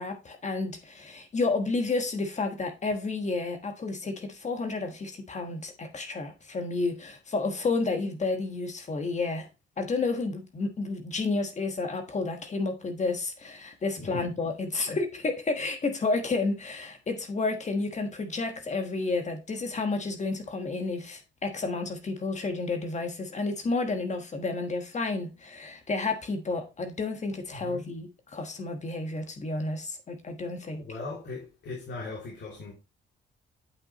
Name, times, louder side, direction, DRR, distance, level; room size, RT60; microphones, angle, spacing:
voice 1, 0.0-9.5 9.8-30.8, left 3 dB, 35° left, 1.4 m, -31 dB
voice 2, 27.5-27.8 30.6-32.7, left 2 dB, 60° left, 2.7 m, -39 dB
8.5 x 5.5 x 3.0 m
cardioid pair, 90°, 20 cm